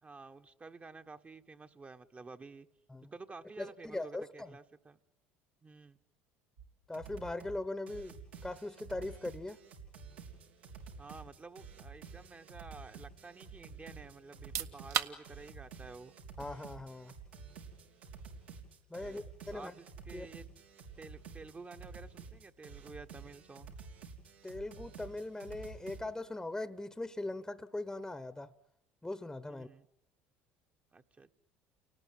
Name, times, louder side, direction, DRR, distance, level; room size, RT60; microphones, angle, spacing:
voice 1, 0.0-2.7 3.1-5.0 5.6-6.0 11.0-16.1 19.0-20.4 21.0-23.8 29.5-29.9 30.9-31.4, right 3 dB, 25° right, 1.3 m, -51 dB
voice 2, 3.6-4.6 6.9-8.2 8.4-9.6 16.4-17.1 18.9-19.7 20.1-20.3 24.4-28.5 29.0-29.7, left 2 dB, 10° left, 1.1 m, -40 dB
sound 1, 6.6-6.7 6.9-7.6 7.9-26.0, right 5 dB, 90° right, 4.0 m, -50 dB
sound 2, 14.3-26.9, right 9 dB, 60° right, 1.7 m, -46 dB
29.5 x 18.5 x 9.4 m
hypercardioid pair, 75°, 6 cm